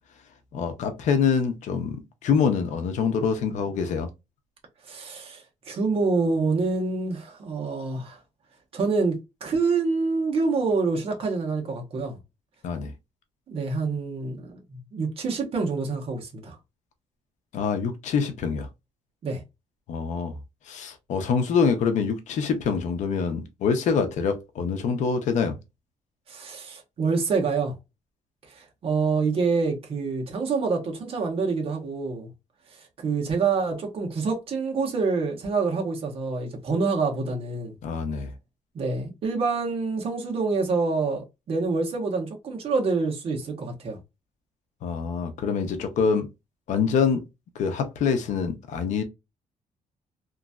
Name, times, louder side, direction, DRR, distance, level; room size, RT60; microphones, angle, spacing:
voice 1, 0.5-4.1 12.6-12.9 17.5-18.7 19.9-20.4 20.7-25.6 37.8-38.3 44.8-46.3 46.7-47.2 47.5-49.0, left 6 dB, 65° left, 0.6 m, -25 dB
voice 2, 4.9-8.2 8.7-12.2 13.5-16.5 19.2-19.4 26.3-27.8 28.5-32.3 32.8-37.8 38.7-44.0, right 4 dB, 45° right, 1.0 m, -26 dB
2.9 x 2.6 x 2.2 m
cardioid pair, 160°, 13 cm